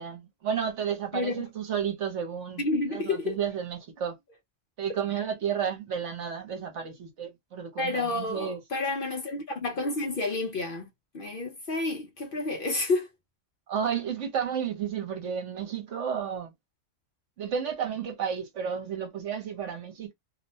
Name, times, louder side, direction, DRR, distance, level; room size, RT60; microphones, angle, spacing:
voice 1, 0.0-2.6 2.9-4.2 4.8-8.6 13.7-16.5 17.4-20.1, right 7 dB, 65° right, 1.1 m, -32 dB
voice 2, 1.1-1.4 2.6-3.4 7.8-10.9 11.1-13.1, left 3 dB, 55° left, 0.6 m, -30 dB
2.8 x 2.1 x 2.7 m
omnidirectional pair, 1.4 m